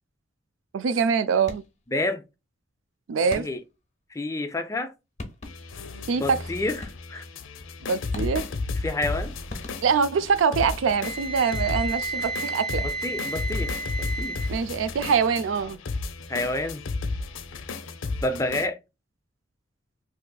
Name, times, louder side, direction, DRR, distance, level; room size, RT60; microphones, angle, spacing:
voice 1, 0.7-1.6 3.1-3.5 6.1-6.4 7.8-8.5 9.8-12.9 14.5-15.8, right 6 dB, 70° right, 0.4 m, -24 dB
sound 1, 1.4-1.9 3.3-3.8 4.8-4.9 5.2-5.8 6.8-7.3 8.1-8.7 9.5-10.2 10.6-11.3, left 2 dB, 35° left, 0.8 m, -41 dB
voice 2, 1.9-2.2 3.4-3.6 4.1-4.9 6.2-7.2 8.8-9.3 12.8-14.4 16.3-16.8 18.2-18.8, left 2 dB, 15° left, 0.4 m, -29 dB
sound 2, 5.4-18.7, left 3 dB, 75° left, 0.5 m, -33 dB
Wind instrument woodwind instrument, 11.0-14.5, right 3 dB, 30° right, 0.9 m, -32 dB
3.9 x 2.7 x 2.2 m
head